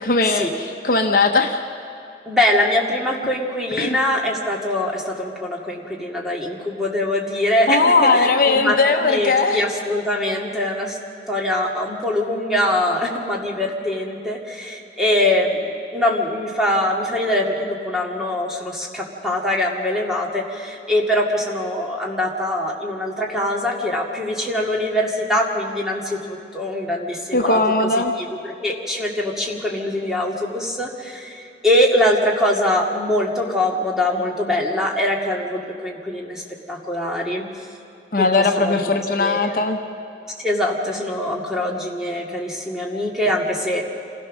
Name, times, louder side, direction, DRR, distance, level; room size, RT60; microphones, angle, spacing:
voice 1, 0.0-1.6 3.8-4.0 7.7-9.6 27.3-28.1 38.1-39.8, left 3 dB, 50° left, 4 dB, 1.0 m, -18 dB
voice 2, 2.3-11.0 11.3-27.6 28.2-28.3 28.6-36.4 36.7-37.5 38.2-38.3 38.5-39.6 40.4-43.9, left 1 dB, 5° right, -2 dB, 2.2 m, -23 dB
27.0 x 16.5 x 6.3 m, 2.7 s
head